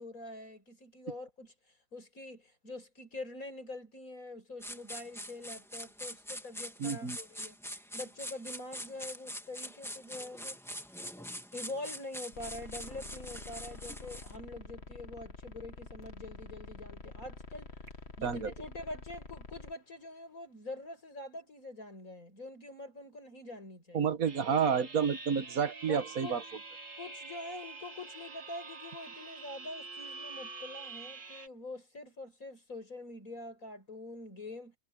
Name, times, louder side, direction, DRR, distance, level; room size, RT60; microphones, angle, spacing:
voice 1, 0.0-1.5 1.9-7.6 7.9-10.6 11.5-17.8 18.2-24.1 25.9-26.4 27.0-34.8, left 2 dB, 80° left, 6.6 m, -45 dB
sound 1, 4.6-14.3, equal, ahead, 2.3 m, -44 dB
voice 2, 6.8-7.2 18.2-18.5 23.9-26.4, right 7 dB, 90° right, 1.8 m, -30 dB
sound 2, 12.3-19.7, left 3 dB, 50° left, 2.3 m, -48 dB
sound 3, 24.3-31.5, right 3 dB, 65° right, 2.7 m, -46 dB
omnidirectional pair, 1.4 m